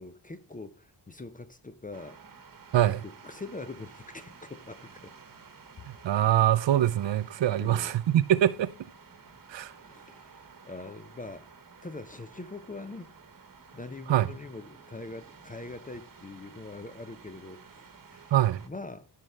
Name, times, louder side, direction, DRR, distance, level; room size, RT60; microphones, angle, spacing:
voice 1, 0.0-2.2 2.8-5.1 5.8-5.9 7.6-8.0 9.8-11.5 11.8-13.1 13.7-18.3 18.6-19.1, left 3 dB, 20° left, 0.4 m, -43 dB
sound 1, 1.9-18.7, right 5 dB, 50° right, 1.1 m, -52 dB
voice 2, 5.9-8.7 9.5-9.7 14.1-14.3 18.3-18.6, right 12 dB, 80° right, 0.6 m, -24 dB
14.5 x 5.0 x 3.2 m
wide cardioid pair, 165°, 44 cm